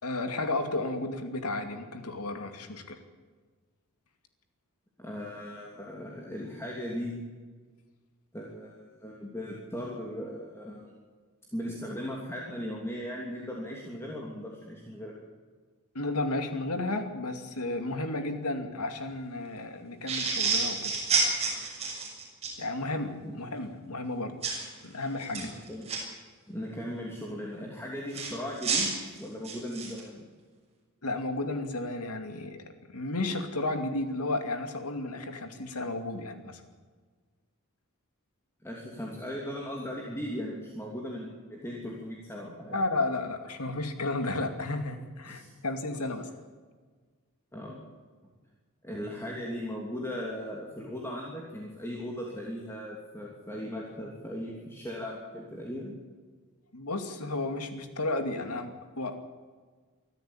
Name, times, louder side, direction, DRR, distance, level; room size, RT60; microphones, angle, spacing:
voice 1, 0.0-3.0 15.9-20.9 22.6-24.4 24.8-25.5 31.0-32.6 32.9-36.6 42.7-46.3 56.7-59.2, left 2 dB, 85° left, 6 dB, 2.6 m, -33 dB
voice 2, 5.0-7.2 8.3-10.9 11.5-15.2 23.2-23.3 25.4-25.9 26.5-28.9 29.2-30.2 38.6-42.8 45.3-45.5 47.5-47.8 48.8-55.9, equal, 10° left, -2 dB, 3.0 m, -38 dB
sound 1, 20.1-22.6 24.4-24.6 25.2-26.0 28.1-30.0, right 4 dB, 30° right, 6.9 m, -29 dB
24.5 x 13.5 x 8.8 m, 1.5 s
head